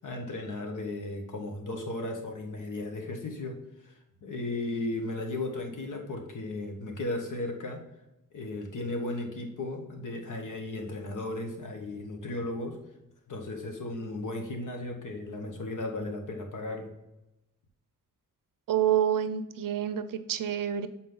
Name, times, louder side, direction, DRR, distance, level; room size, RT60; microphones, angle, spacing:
voice 1, 0.0-3.9 4.2-7.8 8.3-12.8 13.3-16.9, left 2 dB, 70° left, 2 dB, 1.5 m, -35 dB
voice 2, 18.7-20.9, right 10 dB, 80° right, 11 dB, 0.5 m, -28 dB
7.6 x 4.2 x 3.8 m, 0.93 s
wide cardioid pair, 140°, 33 cm